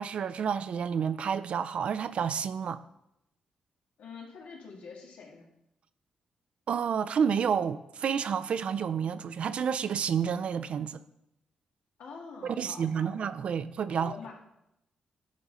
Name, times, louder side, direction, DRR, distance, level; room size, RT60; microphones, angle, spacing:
voice 1, 0.0-2.8 6.7-11.0 12.4-14.1, right 7 dB, 55° right, 0.4 m, -30 dB
voice 2, 4.0-5.5 12.0-13.2 13.9-14.3, left 5 dB, 80° left, 1.9 m, -46 dB
10.5 x 4.2 x 5.1 m
wide cardioid pair, 135°, 2 cm